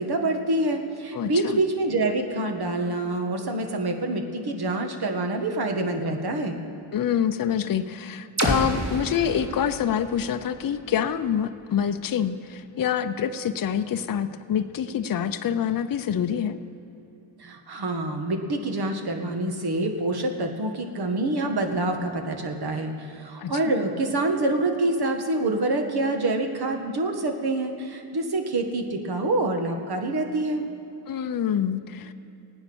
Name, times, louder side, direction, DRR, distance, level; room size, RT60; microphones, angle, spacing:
voice 1, 0.0-6.6 17.4-30.7, right 2 dB, 50° right, 4 dB, 1.8 m, -26 dB
voice 2, 1.1-1.6 6.9-16.6 23.4-23.5 31.1-32.1, left 8 dB, 45° left, 9 dB, 0.7 m, -26 dB
sound 1, 8.4-12.2, right 1 dB, 35° right, 2.8 m, -31 dB
16.5 x 9.6 x 6.3 m, 2.9 s
cardioid pair, 70°, 48 cm